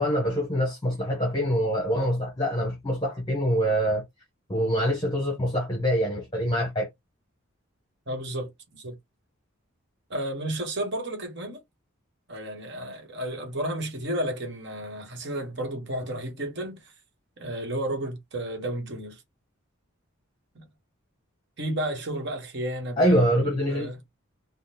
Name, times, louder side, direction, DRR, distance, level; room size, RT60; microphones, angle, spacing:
voice 1, 0.0-4.0 4.5-6.9 23.0-23.9, equal, 20° left, 0.9 m, -25 dB
voice 2, 8.1-9.0 10.1-11.6 12.3-16.9 17.4-19.2 20.5-20.7 21.6-24.0, right 1 dB, 55° right, 1.1 m, -32 dB
3.4 x 2.1 x 2.8 m
head